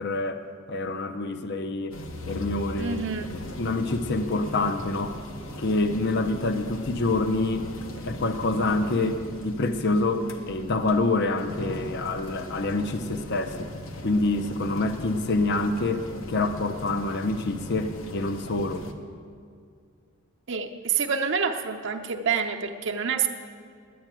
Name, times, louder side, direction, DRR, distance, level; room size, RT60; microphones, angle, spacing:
voice 1, 0.0-2.0 2.3-3.0 3.6-5.2 5.6-7.7 8.1-13.7 14.0-18.9, left 2 dB, 55° left, 9 dB, 0.6 m, -26 dB
sound 1, 1.9-18.9, left 1 dB, 70° left, 1.0 m, -39 dB
voice 2, 2.8-3.3 20.5-23.3, right 6 dB, 60° right, 4 dB, 0.7 m, -27 dB
10.0 x 9.4 x 8.9 m, 2.2 s
head